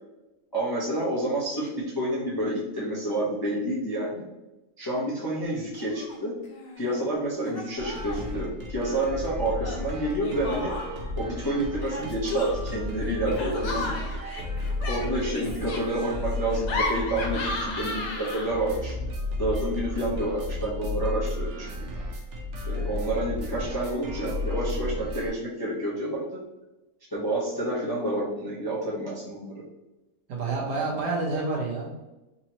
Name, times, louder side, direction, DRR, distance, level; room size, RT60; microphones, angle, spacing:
voice 1, 0.5-4.2 4.8-6.3 6.8-10.7 11.1-13.9 14.9-18.9 19.4-21.9 22.7-26.2 27.1-29.6, right 1 dB, 25° left, -8 dB, 0.5 m, -29 dB
Laughter, 5.7-6.2 6.4-7.1 7.5-8.3 9.6-11.1 11.8-18.7, left 3 dB, 60° left, 0.8 m, -35 dB
sound 1, 7.8-25.3, left 2 dB, 55° right, 0.9 m, -33 dB
voice 2, 30.3-32.0, right 3 dB, 75° right, -2 dB, 1.6 m, -29 dB
4.0 x 3.0 x 2.8 m, 1.0 s
omnidirectional pair, 1.8 m